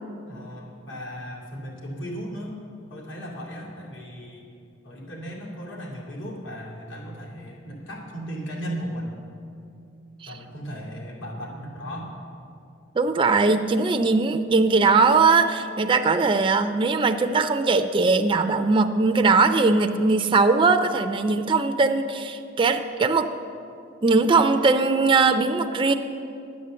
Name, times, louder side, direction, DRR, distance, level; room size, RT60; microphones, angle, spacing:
voice 1, 0.3-2.6 2.9-4.4 4.8-9.2 10.3-12.1, equal, 80° left, -3 dB, 2.5 m, -36 dB
voice 2, 13.0-23.3 24.0-25.9, right 4 dB, 25° right, 6 dB, 0.4 m, -20 dB
9.8 x 8.2 x 7.5 m, 2.6 s
head